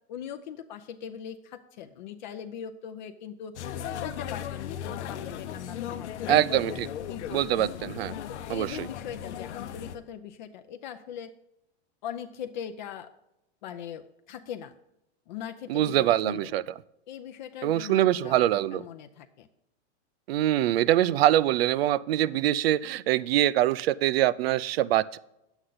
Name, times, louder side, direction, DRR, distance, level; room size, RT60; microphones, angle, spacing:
voice 1, 0.1-3.5 4.0-6.8 7.1-8.0 8.3-11.3 12.0-13.1 13.6-14.8 15.3-16.5 17.1-18.4 18.7-19.5, left 9 dB, 45° left, 7 dB, 0.6 m, -40 dB
sound 1, 3.5-10.0, left 9 dB, 85° left, 0.9 m, -36 dB
voice 2, 6.3-6.9 7.3-8.2 8.5-8.9 15.7-16.6 17.6-18.8 20.3-25.2, right 13 dB, 60° right, 19 dB, 0.5 m, -24 dB
9.8 x 8.1 x 3.9 m, 0.86 s
supercardioid pair, 165°, 34 cm